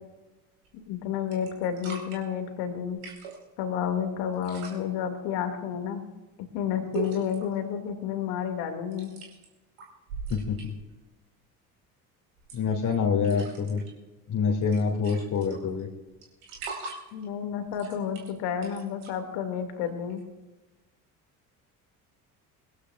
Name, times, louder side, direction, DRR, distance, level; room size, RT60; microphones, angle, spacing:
sound 1, 0.6-1.0 1.3-2.2 2.9-3.4 4.3-4.8 6.9-7.6 8.9-9.5 9.8-10.9 12.4-12.9 13.2-13.9 14.3-14.4 14.6-15.8 16.2-17.2 17.7-19.1 20.1-20.2, right 4 dB, 70° right, 4.7 m, -40 dB
voice 1, 0.7-3.0 3.6-6.0 6.4-9.1 17.1-20.2, left 8 dB, 60° left, 5 dB, 2.4 m, -31 dB
voice 2, 10.3-10.8 12.5-13.8 14.3-15.9, left 5 dB, 40° left, -3 dB, 2.7 m, -26 dB
23.5 x 16.5 x 2.5 m, 1.1 s
figure-of-eight pair, 60°, 45 cm